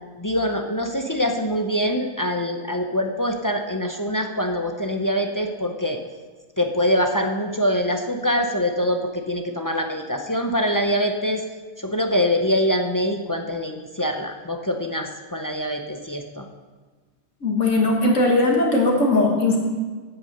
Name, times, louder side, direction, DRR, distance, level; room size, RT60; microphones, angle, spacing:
voice 1, 0.2-6.0 6.6-11.4 11.8-16.5, equal, 25° left, 4 dB, 0.4 m, -24 dB
voice 2, 17.4-19.6, left 2 dB, 75° left, 0 dB, 1.8 m, -19 dB
8.8 x 8.4 x 6.6 m, 1.4 s
omnidirectional pair, 1.3 m